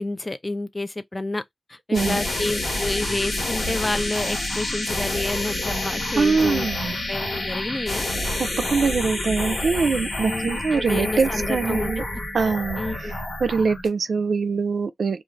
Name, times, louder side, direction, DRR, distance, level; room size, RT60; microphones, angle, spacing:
voice 1, 0.0-1.4 1.7-6.7 7.1-8.1 10.3-11.9 12.8-13.1, left 2 dB, 35° left, 0.5 m, -29 dB
sound 1, 1.9-13.9, left 1 dB, 80° left, 1.3 m, -28 dB
voice 2, 1.9-2.2 6.2-6.9 8.4-12.0 12.3-15.2, right 5 dB, 85° right, 0.3 m, -23 dB
2.4 x 2.4 x 3.1 m
cardioid pair, 40°, 0 cm